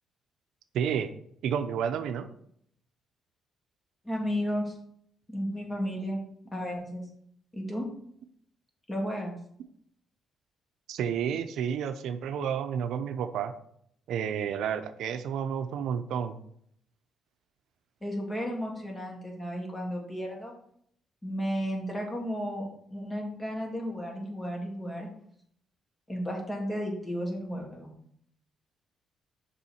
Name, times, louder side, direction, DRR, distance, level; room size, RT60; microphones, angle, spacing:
voice 1, 0.7-1.1 1.4-2.3 10.9-13.5 14.1-16.4, right 8 dB, 80° right, 9 dB, 0.5 m, -30 dB
voice 2, 4.0-4.8 5.3-6.2 6.5-7.1 7.5-7.9 8.9-9.4 18.0-20.5 21.2-25.1 26.1-27.9, equal, 20° left, 0 dB, 2.5 m, -33 dB
6.9 x 5.5 x 4.4 m, 0.68 s
cardioid pair, 90°, 0 cm